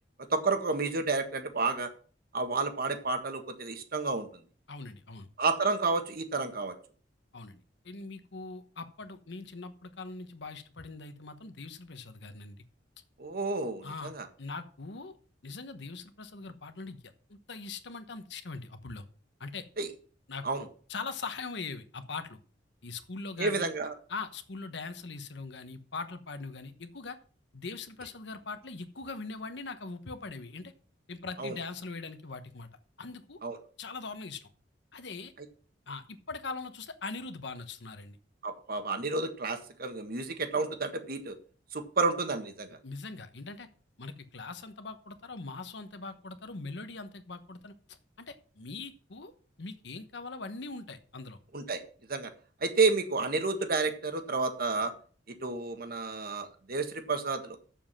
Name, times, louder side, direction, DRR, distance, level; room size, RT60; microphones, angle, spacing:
voice 1, 0.3-1.9 2.3-4.4 5.4-6.7 13.2-14.3 19.8-19.9 20.4-20.7 23.4-23.9 31.4-31.6 33.4-33.6 38.4-41.4 41.7-42.8 51.5-51.8 52.1-52.3 52.6-54.9 55.3-57.6, right 3 dB, 55° right, 7 dB, 1.5 m, -30 dB
voice 2, 4.7-5.3 7.3-12.6 13.8-14.1 14.4-15.2 15.4-17.0 17.3-19.0 19.4-19.6 20.3-20.4 20.9-22.4 22.8-23.7 24.1-27.2 27.5-30.7 31.1-32.7 33.0-33.4 33.8-34.5 34.9-35.3 35.9-38.2 42.8-43.7 44.0-49.3 49.6-51.4, left 4 dB, 70° left, 10 dB, 1.1 m, -41 dB
7.5 x 7.2 x 7.4 m, 0.43 s
head